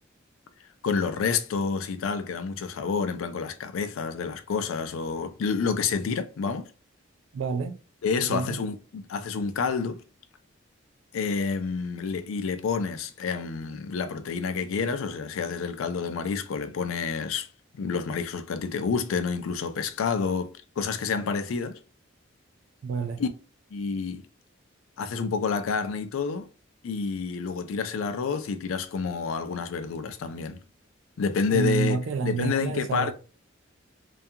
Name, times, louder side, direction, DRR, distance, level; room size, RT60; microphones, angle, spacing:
voice 1, 0.8-6.7 8.0-10.0 11.1-17.5 17.7-21.8 23.2-23.3 23.7-24.2 25.0-26.5 26.8-30.6 31.2-32.0 32.2-33.1, left 5 dB, 90° left, 0.4 m, -29 dB
voice 2, 7.3-7.8 8.2-8.6 22.8-23.2 31.5-33.1, right 5 dB, 75° right, 0.3 m, -28 dB
2.3 x 2.3 x 2.7 m
head